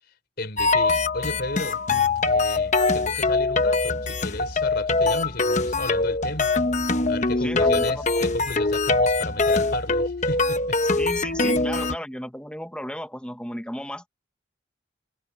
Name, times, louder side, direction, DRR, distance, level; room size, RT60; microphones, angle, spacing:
voice 1, 0.4-1.8 2.2-6.5 7.1-10.8 11.4-11.8, left 2 dB, 50° left, 4.5 m, -34 dB
sound 1, 0.6-12.0, left 3 dB, 35° left, 1.0 m, -23 dB
voice 2, 7.4-8.1 11.0-14.1, equal, 5° left, 1.4 m, -34 dB
head